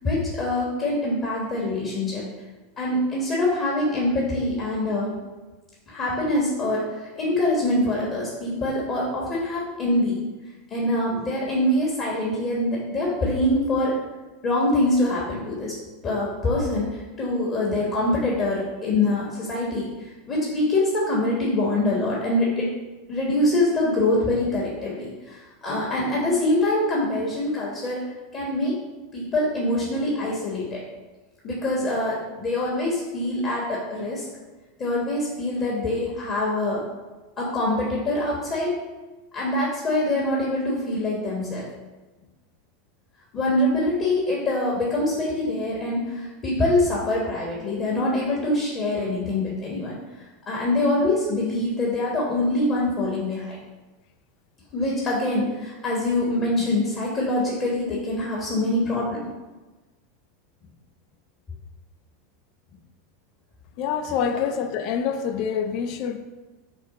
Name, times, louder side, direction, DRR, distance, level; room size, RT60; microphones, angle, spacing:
voice 1, 0.0-2.2 2.8-5.1 5.9-6.9 7.2-10.2 10.7-13.9 14.4-15.7 16.0-16.9 17.2-19.9 20.3-22.7 23.1-28.0 28.3-28.8 29.1-30.8 31.4-34.3 34.8-36.8 37.4-38.8 39.3-41.6 43.3-50.0 50.5-53.6 54.7-59.3, left 1 dB, 40° left, -4 dB, 1.2 m, -24 dB
voice 2, 63.8-66.2, left 7 dB, 55° left, 7 dB, 0.4 m, -26 dB
6.2 x 2.1 x 3.8 m, 1.2 s
hypercardioid pair, 95°, 0 cm